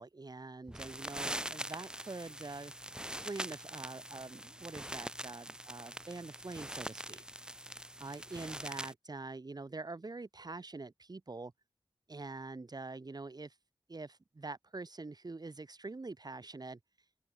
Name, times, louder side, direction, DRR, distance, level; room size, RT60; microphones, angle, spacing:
voice 1, 0.0-2.7 3.2-7.2 8.0-11.5 12.1-13.5 13.9-16.8, right 3 dB, 45° right, 7.3 m, -45 dB
sound 1, 0.7-8.9, right 1 dB, 10° right, 3.0 m, -43 dB
open air
wide cardioid pair, 65°, 9 cm